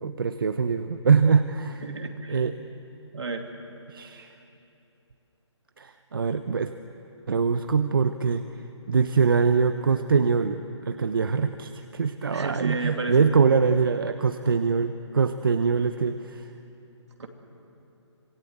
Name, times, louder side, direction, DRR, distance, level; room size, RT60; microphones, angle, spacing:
voice 1, 0.0-1.8 2.3-2.5 3.9-4.4 5.8-6.7 7.3-8.4 8.9-16.5, right 5 dB, 50° right, 9 dB, 0.8 m, -23 dB
voice 2, 1.8-2.4 3.1-3.5 12.3-13.3 17.2-17.3, right 3 dB, 65° right, 4 dB, 2.8 m, -32 dB
26.0 x 19.0 x 8.1 m, 3.0 s
hypercardioid pair, 175°, 15 cm